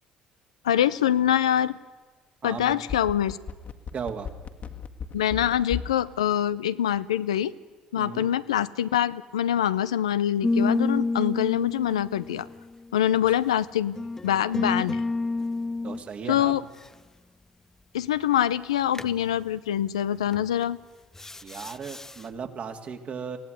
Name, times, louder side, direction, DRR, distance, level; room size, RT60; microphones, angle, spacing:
voice 1, 0.6-1.7 2.4-3.4 5.1-7.5 7.9-12.5 12.9-14.0 14.2-15.0 16.3-16.6 17.9-20.8, left 10 dB, 85° left, 15 dB, 0.7 m, -24 dB
voice 2, 2.4-2.8 3.9-4.3 8.0-8.3 15.8-16.5 21.4-23.4, right 6 dB, 45° right, 6 dB, 2.8 m, -36 dB
sound 1, 2.6-6.0 6.3-6.4, left 7 dB, 50° left, 1.9 m, -35 dB
sound 2, 10.4-13.3 14.0-16.0 18.9-19.2 20.3-20.6 21.1-22.2, left 3 dB, 15° left, 0.7 m, -29 dB
23.5 x 17.0 x 9.4 m, 1.4 s
hypercardioid pair, 55°, 3 cm